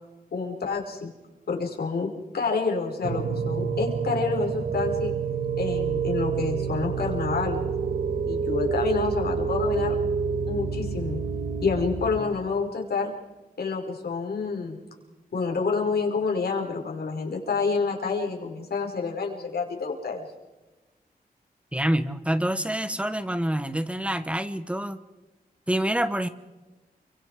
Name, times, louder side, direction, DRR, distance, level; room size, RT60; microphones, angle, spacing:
voice 1, 0.3-1.1 1.5-5.1 5.6-7.7 8.3-9.9 10.5-11.2 11.6-13.1 13.6-14.8 15.3-20.2, left 4 dB, 85° left, 0 dB, 5.3 m, -28 dB
sound 1, 3.0-12.2, right 5 dB, 70° right, 2.0 m, -28 dB
voice 2, 21.7-25.0 25.7-26.3, right 1 dB, 5° right, 11 dB, 1.3 m, -26 dB
29.5 x 25.0 x 4.9 m, 1.1 s
wide cardioid pair, 135°, 16 cm